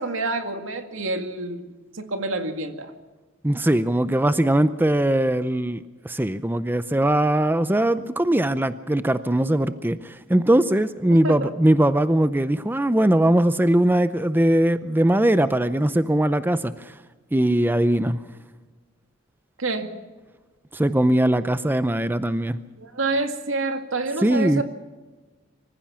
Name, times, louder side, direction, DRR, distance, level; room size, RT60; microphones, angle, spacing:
voice 1, 0.0-2.9 11.1-11.5 19.6-19.9 22.8-24.6, right 2 dB, 80° right, 6 dB, 2.0 m, -28 dB
voice 2, 3.4-16.9 17.3-18.2 20.7-22.6 24.2-24.6, right 1 dB, 10° right, 12 dB, 0.6 m, -20 dB
25.0 x 15.0 x 7.2 m, 1.3 s
head